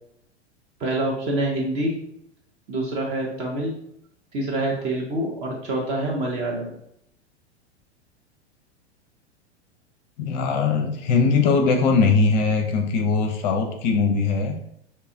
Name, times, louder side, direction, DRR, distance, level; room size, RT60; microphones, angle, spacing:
voice 1, 0.8-1.9 2.7-3.7 4.3-6.7, right 1 dB, 20° right, -2 dB, 0.3 m, -26 dB
voice 2, 10.2-14.5, left 4 dB, 40° left, 4 dB, 0.5 m, -20 dB
2.8 x 2.3 x 2.5 m, 0.73 s
figure-of-eight pair, 90°, 34 cm